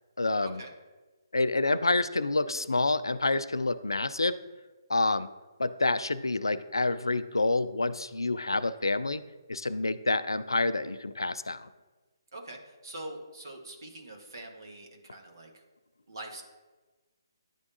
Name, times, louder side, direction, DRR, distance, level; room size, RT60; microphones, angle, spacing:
voice 1, 0.2-0.6 1.3-4.4 4.9-5.3 5.6-9.2 9.5-11.7, left 2 dB, 90° left, 15 dB, 0.3 m, -28 dB
voice 2, 12.3-15.5 16.1-16.4, right 1 dB, 65° right, 2 dB, 1.4 m, -43 dB
10.5 x 3.5 x 2.7 m, 1.2 s
figure-of-eight pair, 145°, 2 cm